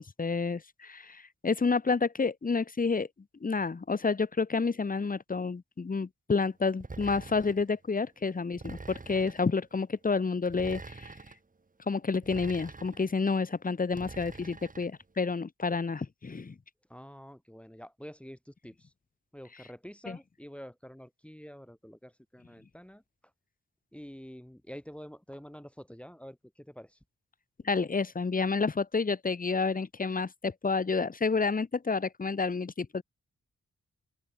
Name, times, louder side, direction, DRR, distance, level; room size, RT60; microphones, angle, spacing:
voice 1, 0.0-3.1 3.4-11.1 11.9-16.5 20.1-20.2 27.6-33.0, left 4 dB, 30° left, 0.9 m, -29 dB
sound 1, 6.8-7.7 8.6-9.5 10.5-11.4 12.2-13.1 13.9-14.9, right 3 dB, 25° right, 1.5 m, -45 dB
voice 2, 16.9-18.9 19.3-23.0 23.9-27.0, equal, 5° left, 3.1 m, -47 dB
open air
wide cardioid pair, 90°, 30 cm